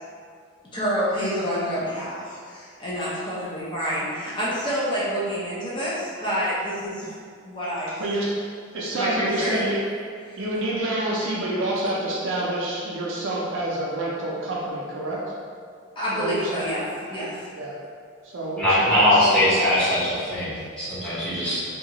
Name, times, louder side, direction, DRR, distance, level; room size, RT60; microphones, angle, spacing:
voice 1, 0.7-7.1 7.4-8.0 8.9-9.6 10.3-10.4 16.0-17.6, equal, 25° left, -9 dB, 0.5 m, -28 dB
voice 2, 8.0-8.3 8.7-9.8 10.4-15.2 16.2-16.7 17.6-17.8 18.2-19.4, right 1 dB, 65° right, -5 dB, 0.4 m, -28 dB
voice 3, 18.6-21.6, left 1 dB, 5° left, -12 dB, 0.8 m, -21 dB
2.8 x 2.3 x 2.8 m, 2.1 s
head